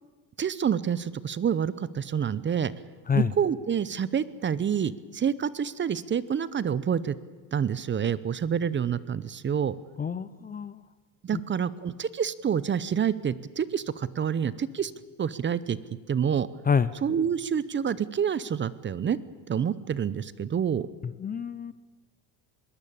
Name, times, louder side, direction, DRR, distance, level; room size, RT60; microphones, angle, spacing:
voice 1, 0.4-2.7 3.2-7.2 7.5-9.8 11.2-14.9 15.2-15.8 16.1-16.5 17.0-19.2 19.5-20.9, right 8 dB, 25° right, 18 dB, 0.7 m, -27 dB
voice 2, 10.0-10.8 11.3-11.4 16.7-16.9 21.0-21.7, left 6 dB, 20° left, 16 dB, 0.6 m, -27 dB
21.0 x 18.0 x 8.7 m, 1.3 s
cardioid pair, 115°, 42 cm